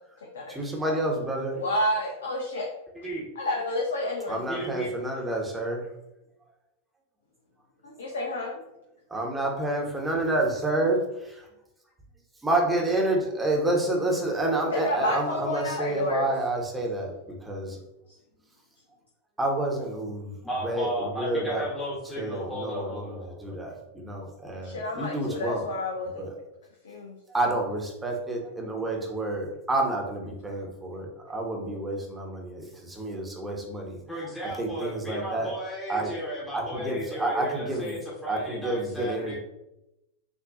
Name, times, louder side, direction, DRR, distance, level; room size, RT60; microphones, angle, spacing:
voice 1, 0.5-1.6 4.3-5.8 9.1-11.4 12.4-17.1 17.4-17.8 19.4-20.3 20.6-21.6 22.2-23.1 23.4-25.7 26.2-26.3 27.3-34.0 34.4-35.5 35.9-36.2 36.5-38.0 38.3-39.3, right 2 dB, 10° right, 0 dB, 1.2 m, -29 dB
voice 2, 1.5-2.7 3.4-4.4 7.8-8.5 14.7-16.3 24.6-26.2 26.8-27.2, left 1 dB, 65° left, 0 dB, 0.7 m, -30 dB
voice 3, 4.5-4.9 20.4-23.6 34.1-39.3, equal, 10° left, -6 dB, 1.4 m, -34 dB
6.7 x 2.9 x 2.6 m, 0.91 s
figure-of-eight pair, 90°, 0 cm